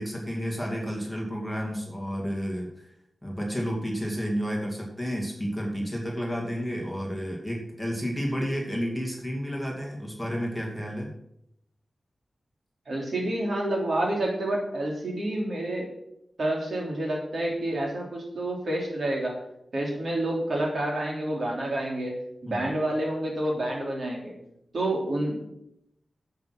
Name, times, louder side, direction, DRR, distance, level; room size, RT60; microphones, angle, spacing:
voice 1, 0.0-2.9 3.2-11.1 22.5-22.7, equal, ahead, -2 dB, 2.5 m, -31 dB
voice 2, 12.9-15.9 16.4-19.4 19.7-24.3 24.7-25.5, right 1 dB, 55° right, -1 dB, 3.2 m, -29 dB
11.0 x 8.1 x 6.1 m, 0.78 s
wide cardioid pair, 145°, 0 cm